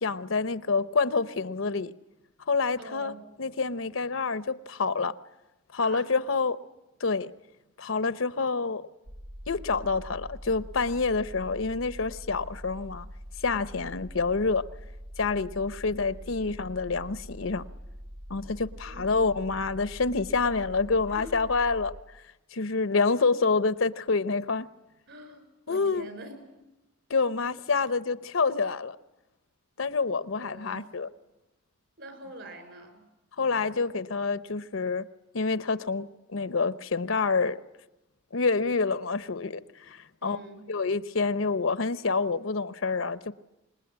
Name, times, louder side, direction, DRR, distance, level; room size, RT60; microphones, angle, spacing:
voice 1, 0.0-1.9 2.5-3.1 3.4-5.2 5.7-6.6 7.0-7.3 7.8-8.8 9.5-13.1 13.4-14.7 15.2-17.6 18.3-22.0 22.5-24.7 25.7-26.1 27.1-29.0 29.8-31.1 33.4-35.1 35.3-37.6 38.3-40.4 40.7-43.3, left 4 dB, 75° left, 0.9 m, -27 dB
voice 2, 2.8-3.2 5.8-6.1 18.9-19.2 21.1-21.4 25.1-26.5 30.2-30.9 32.0-33.1 40.2-40.7, right 1 dB, 60° right, 5.7 m, -45 dB
sound 1, 9.0-22.0, equal, 90° right, 1.4 m, -44 dB
26.0 x 20.5 x 9.6 m
head